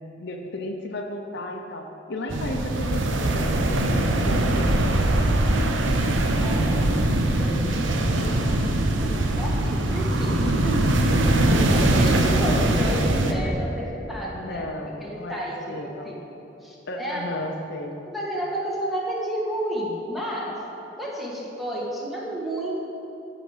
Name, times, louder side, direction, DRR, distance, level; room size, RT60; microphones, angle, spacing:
voice 1, 0.2-4.7 5.1-5.6 10.8-11.7 14.3-15.4 15.7-16.2 16.9-18.0, left 1 dB, 65° left, 3 dB, 0.7 m, -34 dB
sound 1, 2.3-13.3, right 1 dB, 80° right, 0.8 m, -22 dB
voice 2, 6.4-7.0 7.3-10.9 11.5-16.1 16.6-17.4 18.1-20.6 21.0-22.8, right 1 dB, ahead, -5 dB, 1.5 m, -31 dB
13.0 x 5.0 x 5.0 m, 2.9 s
head